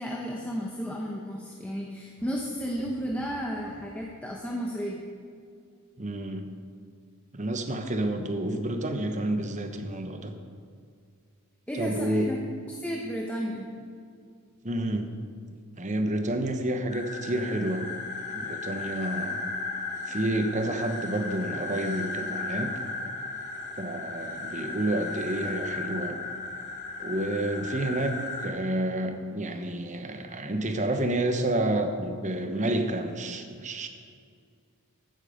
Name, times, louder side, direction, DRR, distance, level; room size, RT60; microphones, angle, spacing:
voice 1, 0.0-5.0 11.7-12.4 12.7-13.7 20.1-20.2, equal, 5° left, -2 dB, 1.0 m, -33 dB
sound 1, 2.2-4.1 4.8-5.2, equal, 80° right, 3.0 m, -52 dB
voice 2, 6.0-6.5 7.3-10.3 11.8-12.3 14.6-15.1 15.8-17.9 18.3-19.4 20.1-22.7 23.0-23.1 23.8-26.2 27.0-33.9, right 1 dB, 35° right, 7 dB, 1.0 m, -29 dB
sound 2, 16.9-28.5, left 3 dB, 35° left, 1.6 m, -35 dB
14.5 x 9.3 x 5.1 m, 2.2 s
head